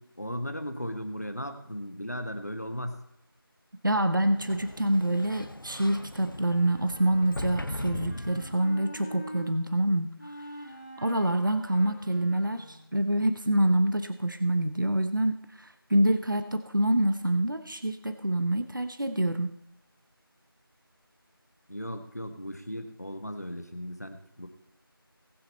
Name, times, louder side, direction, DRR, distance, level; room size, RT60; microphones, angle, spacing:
voice 1, 0.0-3.0 21.7-24.5, equal, 45° left, 7 dB, 1.3 m, -36 dB
voice 2, 3.8-10.3 11.0-19.6, right 1 dB, 55° right, 9 dB, 0.9 m, -26 dB
Sliding door, 4.2-8.9, left 1 dB, 60° left, 0.9 m, -39 dB
Wind instrument woodwind instrument, 6.3-9.5 10.2-12.9, equal, 20° left, 2.1 m, -45 dB
19.5 x 6.6 x 4.2 m, 0.72 s
figure-of-eight pair, 175°, 13 cm